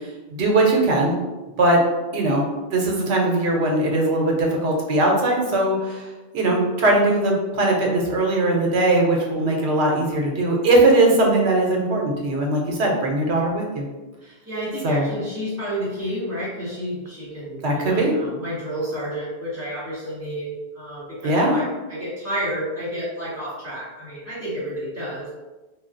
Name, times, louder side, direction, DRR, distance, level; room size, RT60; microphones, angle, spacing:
voice 1, 0.3-1.1 1.6-1.8 2.1-2.4 2.7-5.8 6.3-13.8 14.8-15.1 17.6-18.1 21.2-21.6, right 2 dB, 80° right, 0 dB, 0.9 m, -20 dB
voice 2, 14.2-25.4, equal, 15° right, -11 dB, 1.4 m, -30 dB
3.1 x 2.3 x 2.5 m, 1.2 s
omnidirectional pair, 1.1 m